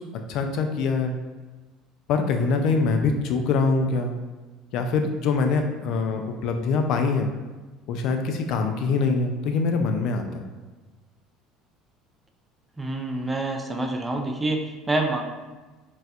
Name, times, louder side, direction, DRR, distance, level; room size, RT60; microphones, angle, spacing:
voice 1, 0.3-1.2 2.1-4.1 4.7-7.3 7.9-10.4, left 4 dB, 65° left, 5 dB, 0.3 m, -24 dB
voice 2, 12.8-15.2, right 2 dB, 15° right, 2 dB, 0.4 m, -27 dB
4.0 x 2.2 x 2.4 m, 1.2 s
supercardioid pair, 115°, 0 cm